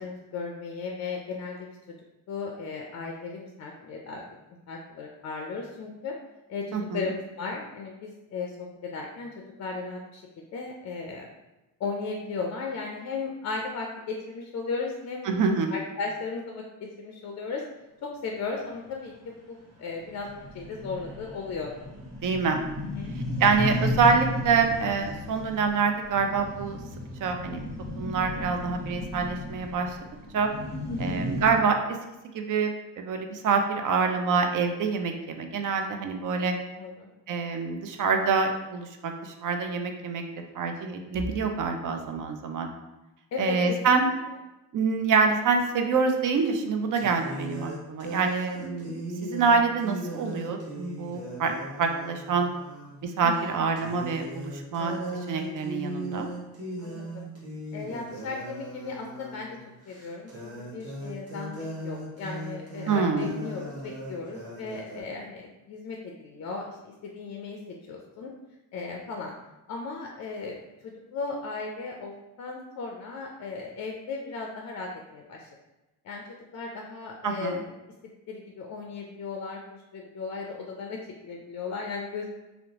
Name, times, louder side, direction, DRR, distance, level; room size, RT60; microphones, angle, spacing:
voice 1, 0.0-1.8 2.3-4.2 4.7-6.1 6.5-9.3 9.6-10.2 10.5-11.3 11.8-16.6 17.0-17.6 18.0-20.3 20.5-21.7 22.8-23.1 30.9-31.3 36.8-37.1 43.3-44.0 53.2-53.7 56.8-57.3 57.7-59.6 59.9-67.6 67.9-68.3 68.7-69.3 69.7-70.6 70.8-75.5 76.0-76.2 76.5-77.7 78.3-79.6 79.9-81.0 81.2-82.4, left 4 dB, 45° left, 1 dB, 0.4 m, -36 dB
voice 2, 15.3-15.7 22.2-22.6 23.4-26.8 27.2-27.6 28.0-30.0 30.3-30.5 31.0-32.0 32.3-36.6 37.3-40.2 40.6-42.7 43.4-44.1 44.7-52.5 53.0-55.0 55.3-56.3 62.9-63.3 77.2-77.6, right 5 dB, 50° right, 5 dB, 0.4 m, -26 dB
sound 1, 18.8-18.9 19.3-19.4 19.7-19.8 20.0-31.6, left 1 dB, 75° right, 1.0 m, -34 dB
sound 2, 46.1-46.2 47.0-53.0 53.3-53.5 53.8-65.0, right 1 dB, 35° right, 0.9 m, -38 dB
2.8 x 2.0 x 2.8 m, 1.0 s
cardioid pair, 70°, 41 cm